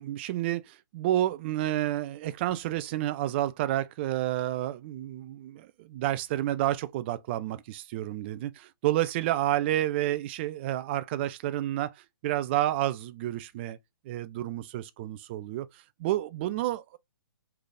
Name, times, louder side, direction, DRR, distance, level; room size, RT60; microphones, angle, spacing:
voice 1, 0.0-13.8 14.0-17.0, right 14 dB, 30° right, 0.3 m, -30 dB
3.8 x 3.3 x 2.5 m
hypercardioid pair, 145°, 12 cm